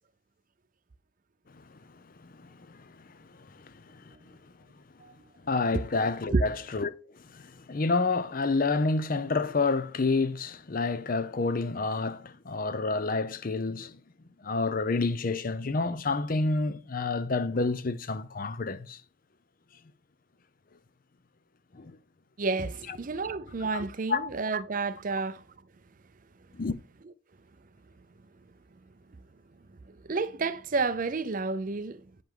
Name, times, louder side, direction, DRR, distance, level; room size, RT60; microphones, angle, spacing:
voice 1, 2.2-4.2 5.4-6.9 7.2-14.0 14.4-19.0 21.7-22.0 23.7-23.8 24.1-24.3 26.5-26.7, left 3 dB, 45° left, 0.6 m, -29 dB
voice 2, 22.4-25.4 29.8-32.1, right 3 dB, 40° right, 0.5 m, -30 dB
9.1 x 5.2 x 3.7 m
head